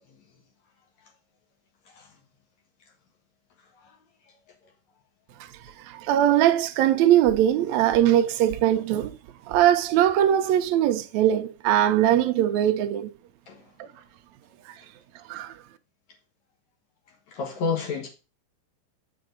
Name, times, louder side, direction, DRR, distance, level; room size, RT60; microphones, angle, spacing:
voice 1, 5.9-9.1 9.5-13.1 13.8-13.9 15.3-15.5, right 11 dB, 75° right, 1.7 m, -21 dB
voice 2, 17.3-18.1, left 5 dB, 60° left, 2.4 m, -29 dB
7.7 x 5.9 x 3.8 m
omnidirectional pair, 3.9 m